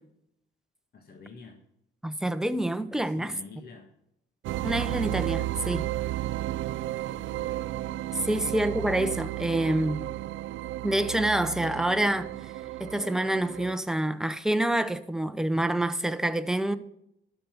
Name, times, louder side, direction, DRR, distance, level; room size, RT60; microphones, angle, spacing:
voice 1, 0.9-1.6 2.9-3.9 7.0-7.5 8.2-8.4, left 4 dB, 50° left, 1.7 m, -48 dB
voice 2, 2.0-3.3 4.6-5.9 8.1-10.0 10.8-12.3 12.8-16.7, right 1 dB, 5° right, 0.8 m, -27 dB
sound 1, 4.4-13.7, right 15 dB, 80° right, 0.5 m, -33 dB
12.0 x 5.8 x 7.2 m
cardioid pair, 90°, 20 cm